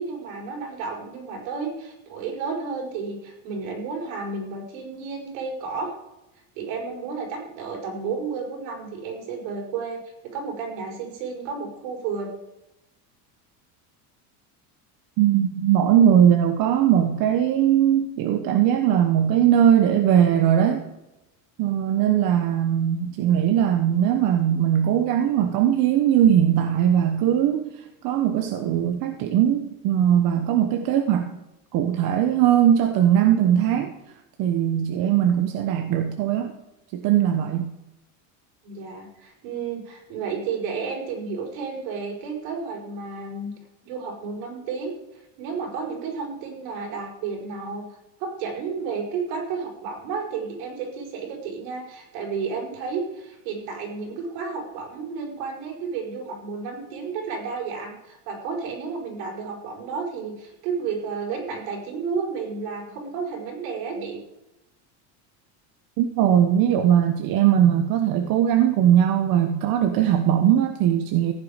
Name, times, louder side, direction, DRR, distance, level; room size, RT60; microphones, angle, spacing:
voice 1, 0.0-5.9 6.5-12.3 38.6-43.5 43.8-44.9 45.4-47.9 48.2-64.2, right 5 dB, 75° right, 0 dB, 5.1 m, -32 dB
voice 2, 15.2-20.8 21.6-31.3 31.7-33.9 34.4-36.6 36.9-37.7 66.0-71.3, right 10 dB, 50° right, 6 dB, 1.1 m, -20 dB
15.0 x 9.3 x 5.1 m, 0.93 s
cardioid pair, 150°, 43 cm